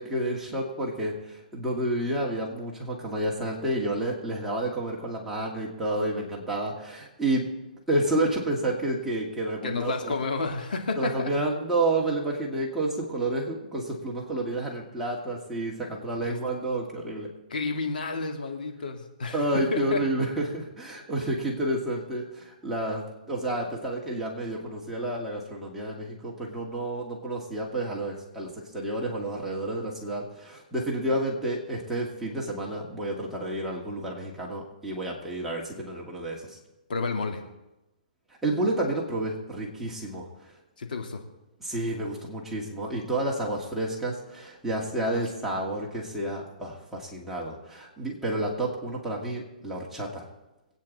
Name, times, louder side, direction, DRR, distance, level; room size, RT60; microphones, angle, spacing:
voice 1, 0.0-7.5 7.9-10.1 11.0-17.3 19.3-36.6 38.4-40.3 41.6-50.3, right 1 dB, 5° right, -4 dB, 2.2 m, -30 dB
voice 2, 9.6-11.3 16.3-16.4 17.5-19.4 19.7-20.0 36.9-37.4 40.8-41.2 45.1-45.2, left 3 dB, 75° left, 3 dB, 2.3 m, -30 dB
22.5 x 9.1 x 4.2 m, 0.98 s
hypercardioid pair, 155°, 5 cm